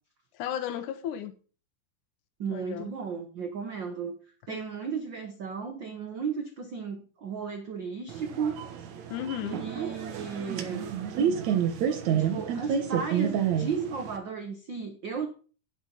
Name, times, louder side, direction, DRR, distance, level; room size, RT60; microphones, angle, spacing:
voice 1, 0.3-1.3 2.5-2.9 4.5-4.6 9.1-9.6, left 10 dB, 70° left, 2.2 m, -34 dB
voice 2, 2.4-4.2 4.5-8.6 9.4-10.9 12.1-15.3, right 6 dB, 80° right, 1.0 m, -34 dB
sound 1, 8.1-14.2, right 8 dB, 60° right, 2.4 m, -29 dB
10.0 x 8.2 x 5.5 m
omnidirectional pair, 3.9 m